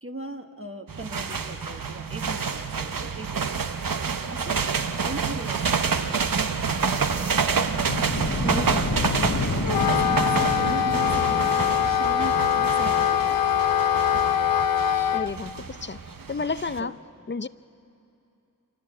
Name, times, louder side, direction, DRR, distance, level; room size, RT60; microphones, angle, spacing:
voice 1, 0.0-3.6 4.3-7.9 8.4-9.0 9.5-13.4 16.8-17.0, right 2 dB, 40° right, 4 dB, 1.2 m, -39 dB
sound 1, 0.9-16.8, right 5 dB, 75° right, 0.9 m, -28 dB
sound 2, 7.9-12.8, left 4 dB, 50° left, 0.9 m, -30 dB
Wind instrument woodwind instrument, 9.6-15.3, left 9 dB, 80° left, 0.6 m, -23 dB
voice 2, 15.1-16.0 16.3-17.0 17.3-17.5, left 4 dB, 35° left, 15 dB, 0.5 m, -31 dB
26.0 x 19.5 x 7.6 m, 2.7 s
wide cardioid pair, 45°, 34 cm